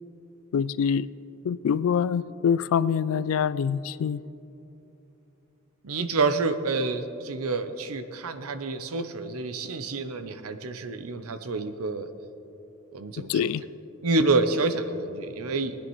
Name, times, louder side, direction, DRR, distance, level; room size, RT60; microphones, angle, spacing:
voice 1, 0.5-1.1 1.4-4.2 13.2-13.6, left 7 dB, 75° left, 17 dB, 0.3 m, -25 dB
voice 2, 5.8-12.1 12.9-13.5 14.0-15.8, right 3 dB, 85° right, 10 dB, 0.7 m, -28 dB
20.0 x 9.9 x 3.1 m, 2.9 s
head